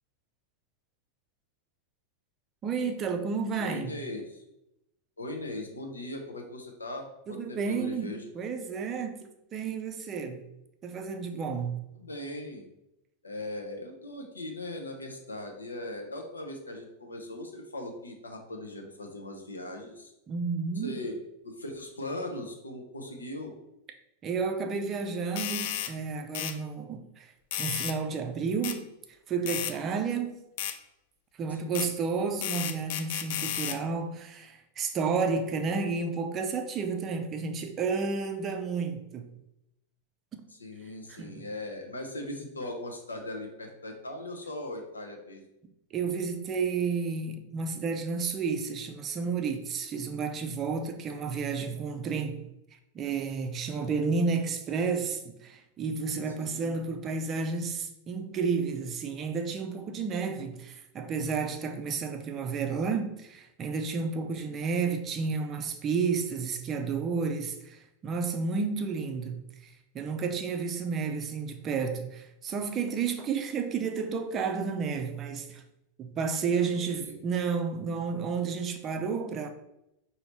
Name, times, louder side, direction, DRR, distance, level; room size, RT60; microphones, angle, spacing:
voice 1, 2.6-4.0 7.3-10.4 10.8-11.8 20.3-20.9 24.2-27.3 27.6-28.8 29.3-30.4 31.4-39.3 40.3-40.4 41.1-41.5 45.9-52.4 52.9-75.6 76.0-79.5, right 5 dB, 30° right, 0.5 m, -31 dB
voice 2, 3.6-4.4 5.2-8.2 12.0-12.7 13.2-20.1 20.7-21.2 21.4-23.5 31.5-31.9 40.6-45.4 56.4-56.7 64.4-64.5 76.6-77.2, left 1 dB, 75° left, 0.8 m, -39 dB
sound 1, 25.4-25.9 26.3-26.6 27.5-28.0 28.6-28.8 29.5-29.7 30.6-30.8 31.7-31.9 32.4-33.8, left 11 dB, 50° left, 0.3 m, -33 dB
5.1 x 2.8 x 3.0 m
figure-of-eight pair, 90°, 0 cm